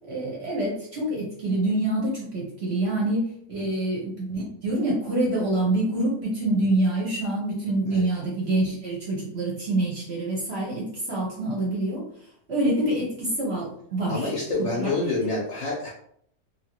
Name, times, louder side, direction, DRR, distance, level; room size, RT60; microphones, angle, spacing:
voice 1, 0.0-12.0 12.5-14.3 14.6-14.9, right 1 dB, 55° right, -4 dB, 0.8 m, -26 dB
voice 2, 14.1-15.9, left 2 dB, 60° left, -3 dB, 0.8 m, -27 dB
2.8 x 2.3 x 2.9 m, 0.67 s
omnidirectional pair, 1.7 m